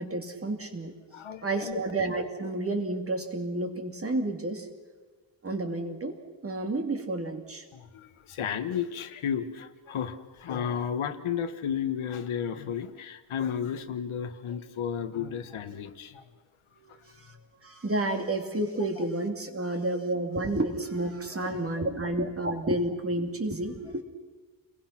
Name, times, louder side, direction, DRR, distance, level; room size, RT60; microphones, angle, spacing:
voice 1, 0.0-0.9 1.4-4.7 5.4-6.1 6.4-7.6 16.8-17.4 17.6-24.0, right 2 dB, 30° right, 2.7 m, -30 dB
voice 2, 1.1-1.8 7.7-16.2 21.4-21.5, left 8 dB, 90° left, 1.6 m, -33 dB
29.5 x 21.5 x 6.0 m
wide cardioid pair, 140°, 47 cm